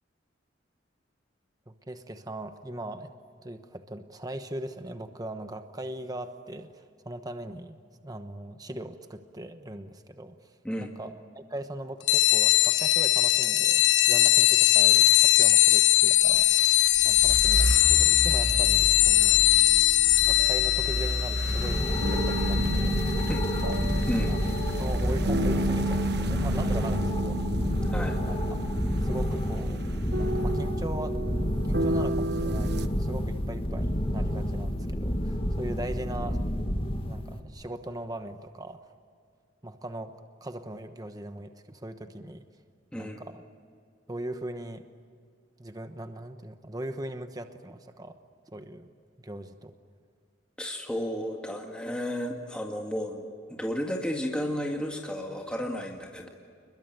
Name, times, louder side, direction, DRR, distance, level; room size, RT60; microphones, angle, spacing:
voice 1, 1.7-3.1 3.4-7.8 8.0-10.5 10.8-19.4 20.3-23.0 23.4-23.8 24.2-27.4 28.2-28.4 29.0-29.8 30.2-31.2 31.7-36.4 37.1-38.9 39.6-40.1 40.4-42.4 42.9-43.4 44.1-44.8 45.6-48.2 48.5-48.9 49.2-49.7, right 1 dB, 20° right, 8 dB, 1.1 m, -39 dB
sound 1, 12.1-24.2, left 15 dB, 70° left, 0.9 m, -22 dB
sound 2, 16.3-32.9, right 1 dB, 60° right, 1.2 m, -31 dB
sound 3, 21.4-37.4, equal, 30° left, 2.0 m, -29 dB
voice 2, 50.6-56.3, equal, 5° left, 1 dB, 2.0 m, -33 dB
29.0 x 21.5 x 9.4 m, 2.2 s
head